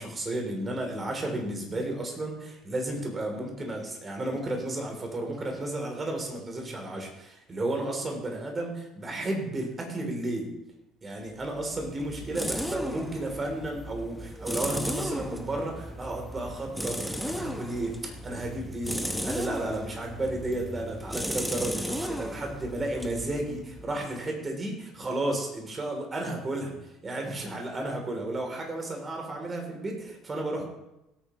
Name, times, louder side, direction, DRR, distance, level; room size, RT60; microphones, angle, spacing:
voice 1, 0.0-10.5 11.0-30.7, right 1 dB, 25° right, 2 dB, 3.3 m, -33 dB
sound 1, 11.4-24.1, equal, ahead, 1.1 m, -36 dB
17.0 x 9.1 x 3.1 m, 0.91 s
figure-of-eight pair, 55°, 0 cm